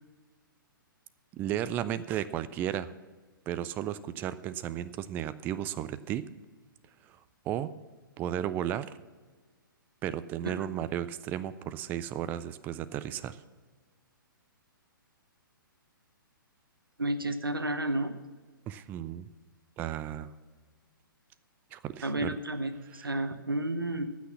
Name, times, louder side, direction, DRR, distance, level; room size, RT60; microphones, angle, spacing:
voice 1, 1.3-2.9 3.5-6.2 7.0-7.2 7.4-7.7 8.2-8.9 10.0-13.4 18.7-19.3 19.8-20.3 21.7-22.4 22.9-23.1, right 11 dB, 15° right, 14 dB, 0.3 m, -34 dB
voice 2, 17.0-18.1 22.0-24.1, right 1 dB, 80° right, 10 dB, 1.0 m, -31 dB
15.0 x 6.3 x 5.6 m, 1.4 s
figure-of-eight pair, 120°, 12 cm